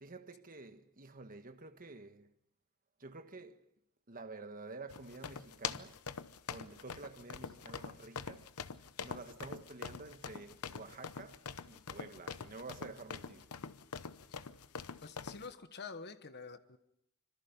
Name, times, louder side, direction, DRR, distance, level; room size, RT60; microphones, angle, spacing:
voice 1, 0.0-2.3 3.0-3.6 4.1-6.0 6.5-8.5 9.0-13.5, right 3 dB, 40° right, 1.4 m, -50 dB
sound 1, 4.9-15.5, left 6 dB, 85° left, 0.9 m, -44 dB
voice 2, 15.0-16.8, left 5 dB, 50° left, 1.3 m, -47 dB
27.0 x 25.5 x 5.3 m
head